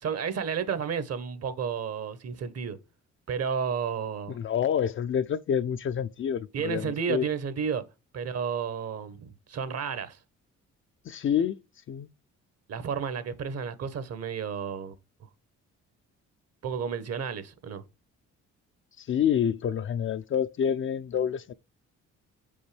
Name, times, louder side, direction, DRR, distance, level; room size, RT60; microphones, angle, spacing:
voice 1, 0.0-2.8 3.3-4.4 6.5-7.8 8.1-10.2 12.7-14.9 16.6-17.8, right 6 dB, 55° right, 1.1 m, -32 dB
voice 2, 4.3-7.3 11.0-11.6 11.9-12.1 19.0-21.5, left 8 dB, 45° left, 0.4 m, -28 dB
6.7 x 5.4 x 3.2 m
cardioid pair, 90°, 30 cm